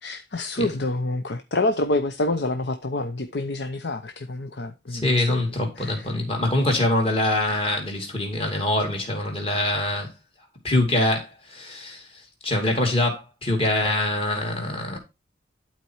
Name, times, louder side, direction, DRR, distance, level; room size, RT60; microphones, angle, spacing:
voice 1, 0.0-5.4 5.8-6.1, left 2 dB, 75° left, 0.8 m, -27 dB
voice 2, 4.9-10.1 10.6-12.0 12.4-15.0, left 1 dB, 30° left, 2.6 m, -24 dB
11.5 x 4.5 x 4.6 m
head